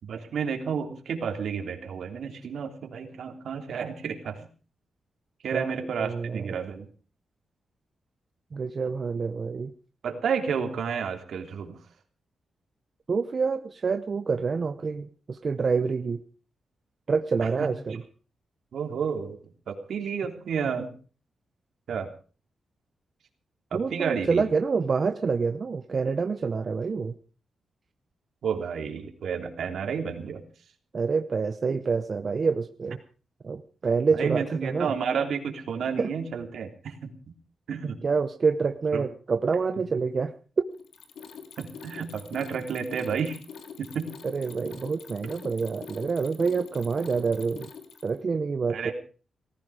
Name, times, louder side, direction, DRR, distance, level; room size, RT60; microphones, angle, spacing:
voice 1, 0.0-4.5 5.4-6.8 10.0-11.8 17.4-17.7 18.7-19.4 19.7-20.9 21.9-22.1 23.7-24.4 28.4-30.4 34.1-37.1 37.7-38.0 38.9-39.1 41.6-43.4 43.8-44.2 48.7-48.9, right 6 dB, 70° right, 5 dB, 3.3 m, -31 dB
voice 2, 6.0-6.5 8.5-9.7 13.1-16.2 17.1-18.0 23.7-27.1 30.9-33.0 33.4-35.0 36.0-36.1 37.8-40.6 44.2-47.7 48.0-48.9, right 5 dB, 40° right, 9 dB, 0.9 m, -27 dB
Mechanisms, 40.8-48.2, left 6 dB, 85° left, 3.1 m, -44 dB
19.0 x 15.5 x 4.9 m, 0.39 s
wide cardioid pair, 130°, 0 cm